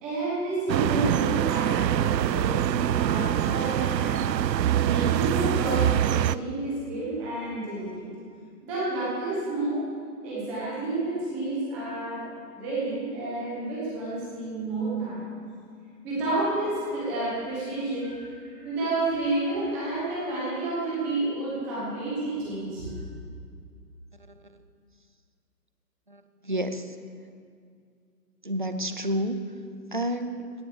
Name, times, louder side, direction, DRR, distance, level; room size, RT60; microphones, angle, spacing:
voice 1, 0.0-4.2 4.8-8.1 8.6-9.8 10.2-12.3 12.5-15.2 16.0-22.9, right 2 dB, 5° right, -9 dB, 1.2 m, -30 dB
sound 1, 0.7-6.4, right 10 dB, 85° right, 0.6 m, -24 dB
voice 2, 26.1-27.0 28.4-29.4 29.9-30.5, right 1 dB, 30° right, 8 dB, 0.6 m, -30 dB
17.5 x 9.6 x 7.0 m, 2.2 s
hypercardioid pair, 175°, 49 cm